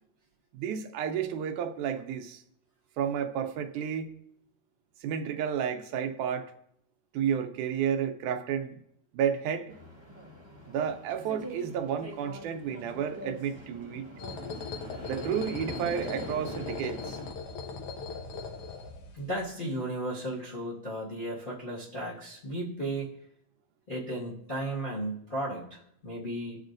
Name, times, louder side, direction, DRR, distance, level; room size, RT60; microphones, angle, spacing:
voice 1, 0.5-2.4 3.0-4.1 5.0-6.5 7.1-8.8 9.1-9.8 10.7-14.1 15.0-17.2, right 8 dB, 85° right, 2.2 m, -31 dB
sound 1, 9.7-17.3, equal, 25° right, 0.6 m, -44 dB
sound 2, 14.2-19.4, left 4 dB, 65° left, 1.5 m, -39 dB
voice 2, 19.1-23.1 23.9-26.6, right 1 dB, 30° left, 1.0 m, -35 dB
19.0 x 6.4 x 2.6 m
omnidirectional pair, 3.5 m